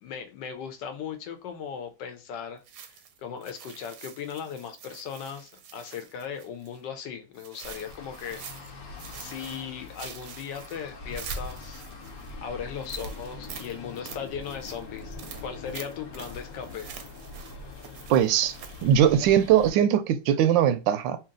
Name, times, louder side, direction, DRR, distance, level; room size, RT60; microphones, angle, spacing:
voice 1, 0.0-2.6 3.2-8.4 9.2-11.8 12.4-15.1 15.4-16.9, left 7 dB, 75° left, 1.3 m, -37 dB
sound 1, 2.6-6.8 7.3-8.7 9.0-12.3 12.8-19.0, right 8 dB, 65° right, 0.9 m, -46 dB
Traffic noise roadway noise, 7.6-19.7, left 2 dB, 55° left, 1.0 m, -42 dB
voice 2, 18.1-18.5 18.8-21.2, right 9 dB, 85° right, 1.3 m, -21 dB
3.2 x 2.8 x 3.7 m
omnidirectional pair, 1.9 m